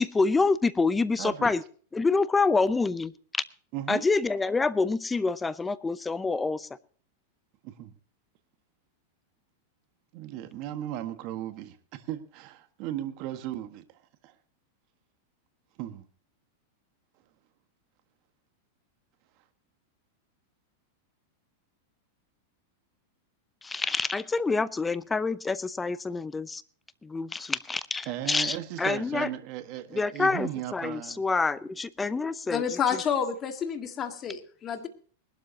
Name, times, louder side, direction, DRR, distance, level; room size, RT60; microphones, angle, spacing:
voice 1, 0.0-1.6 1.9-3.1 3.9-6.7 23.6-26.6 27.0-29.3 30.0-32.6, left 3 dB, 10° left, 16 dB, 0.7 m, -27 dB
voice 2, 1.2-1.5 3.7-4.0 7.6-7.9 10.1-14.3 15.8-16.1 28.0-31.2, right 12 dB, 45° right, 8 dB, 1.6 m, -36 dB
voice 3, 32.5-34.9, left 7 dB, 25° left, 5 dB, 2.0 m, -29 dB
21.0 x 12.0 x 2.9 m, 0.42 s
supercardioid pair, 140°, 0 cm